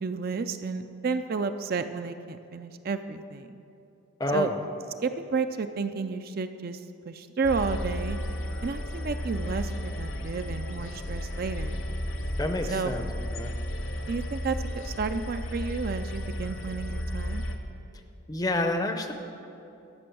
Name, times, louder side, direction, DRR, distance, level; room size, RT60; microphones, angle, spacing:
voice 1, 0.0-3.6 4.3-4.5 5.0-8.2 8.6-11.8 12.7-12.9 14.1-14.6 14.8-17.4, right 4 dB, 45° right, 9 dB, 0.4 m, -31 dB
voice 2, 4.2-4.6 12.4-13.1 13.3-13.5 18.3-19.1, left 1 dB, 15° left, 6 dB, 0.6 m, -28 dB
sound 1, 7.4-17.6, equal, 65° left, 0.9 m, -33 dB
13.0 x 6.0 x 7.7 m, 2.7 s
head